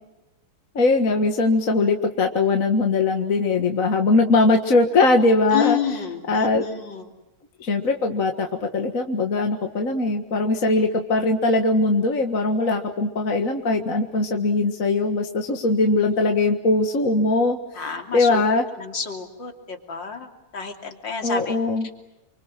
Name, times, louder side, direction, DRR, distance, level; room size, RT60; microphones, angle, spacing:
voice 1, 0.8-5.8 6.3-6.6 7.6-17.6 18.1-18.6 21.2-21.9, left 3 dB, 40° left, 4 dB, 2.0 m, -20 dB
voice 2, 5.5-7.1 17.7-18.4 18.8-21.6 21.8-21.9, left 7 dB, 60° left, 4 dB, 3.7 m, -29 dB
30.0 x 24.5 x 7.6 m, 0.99 s
omnidirectional pair, 2.3 m